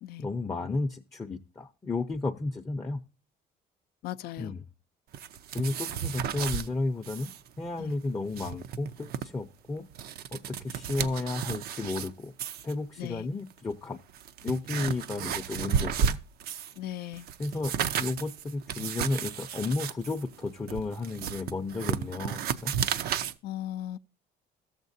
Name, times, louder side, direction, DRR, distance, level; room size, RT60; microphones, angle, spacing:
voice 1, 0.2-3.0 4.4-4.6 5.5-9.9 10.3-12.3 12.6-14.0 14.4-16.2 17.4-22.7, left 3 dB, 20° left, 0.5 m, -33 dB
voice 2, 4.0-4.5 7.7-7.9 13.0-13.3 16.8-17.3 23.4-24.0, left 12 dB, 70° left, 0.4 m, -37 dB
sound 1, 5.1-6.7 7.0-7.4 7.7-7.8 8.2-9.3 9.8-12.1 12.4-12.7 13.5-13.6 14.1-16.8 17.1-23.3, right 8 dB, 65° right, 0.5 m, -33 dB
13.0 x 7.3 x 2.6 m
cardioid pair, 110°, 17 cm